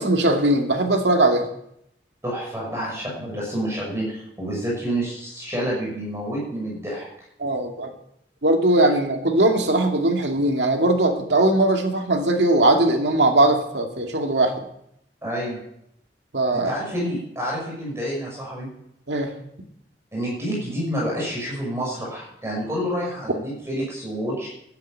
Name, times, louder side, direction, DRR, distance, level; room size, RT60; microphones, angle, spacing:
voice 1, 0.0-1.4 7.4-7.9 8.4-14.7 16.3-16.7 19.1-19.3, right 2 dB, 80° right, 3 dB, 2.3 m, -20 dB
voice 2, 2.2-7.1 15.2-15.6 16.5-18.7 20.1-24.5, equal, 15° right, -4 dB, 6.0 m, -28 dB
12.0 x 9.5 x 8.9 m, 0.77 s
head